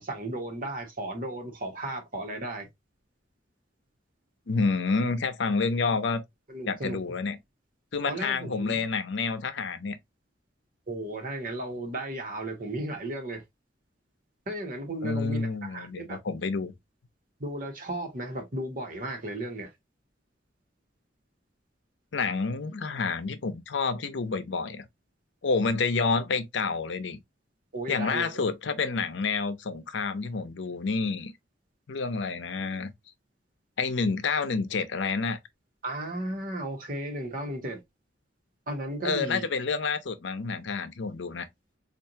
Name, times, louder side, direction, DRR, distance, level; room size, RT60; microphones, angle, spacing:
voice 1, 0.0-2.7 6.5-7.0 8.1-8.8 10.9-13.4 14.5-16.2 17.4-19.7 27.7-28.4 35.8-37.8 38.7-39.5, right 1 dB, 50° right, 1.4 m, -35 dB
voice 2, 4.5-6.2 6.7-7.4 7.9-10.0 15.0-16.7 22.1-24.8 25.4-27.2 27.9-31.3 31.9-32.9 33.8-35.4 39.0-41.5, left 4 dB, 75° left, 0.6 m, -29 dB
4.6 x 2.6 x 2.7 m
head